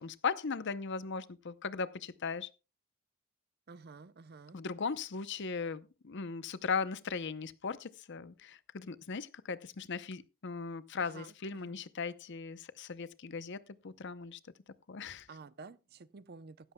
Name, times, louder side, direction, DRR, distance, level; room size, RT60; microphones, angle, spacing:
voice 1, 0.0-2.5 4.5-14.4 14.9-15.3, left 5 dB, 50° left, 0.6 m, -38 dB
voice 2, 3.7-4.6 11.0-11.7 15.3-16.7, right 4 dB, 45° right, 0.6 m, -51 dB
15.5 x 13.0 x 2.2 m
head